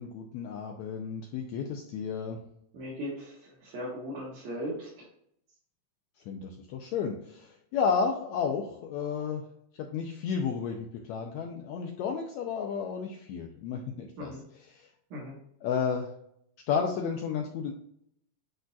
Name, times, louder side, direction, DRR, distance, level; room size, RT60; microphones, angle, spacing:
voice 1, 0.0-2.4 6.3-9.4 9.8-14.3 14.7-14.9 15.6-16.1 16.7-17.7, left 6 dB, 85° left, 2 dB, 1.6 m, -32 dB
voice 2, 2.7-4.9 14.2-14.4 15.1-15.4, equal, 65° right, -6 dB, 2.6 m, -38 dB
10.0 x 3.9 x 2.5 m, 0.71 s
omnidirectional pair, 3.9 m